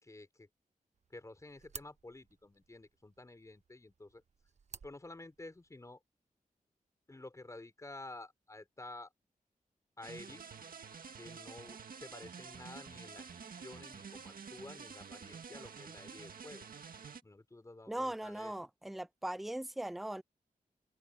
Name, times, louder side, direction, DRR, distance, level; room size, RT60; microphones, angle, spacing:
voice 1, 0.0-0.5 1.1-4.2 4.8-6.0 7.1-9.1 10.0-10.4 11.2-16.6 17.2-18.5, left 2 dB, 20° left, 4.1 m, -51 dB
sound 1, 0.9-6.0, right 5 dB, 50° right, 0.8 m, -56 dB
sound 2, 10.0-17.2, right 6 dB, 80° right, 1.9 m, -49 dB
voice 2, 17.9-20.2, right 1 dB, ahead, 0.3 m, -39 dB
open air
wide cardioid pair, 160°, 15 cm